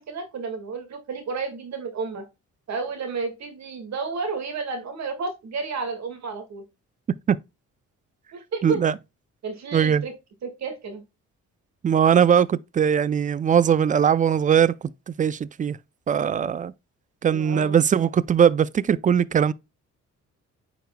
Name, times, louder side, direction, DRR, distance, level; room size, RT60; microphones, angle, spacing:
voice 1, 0.0-2.2 2.7-6.6 8.3-8.8 9.4-10.1 10.4-11.0 17.3-17.8, right 4 dB, 60° right, 1.9 m, -31 dB
voice 2, 8.6-8.9 9.7-10.0 11.8-14.7 15.1-15.8 16.1-16.7 17.2-19.5, right 8 dB, 25° right, 0.4 m, -20 dB
9.1 x 5.0 x 2.2 m
cardioid pair, 90°, 30 cm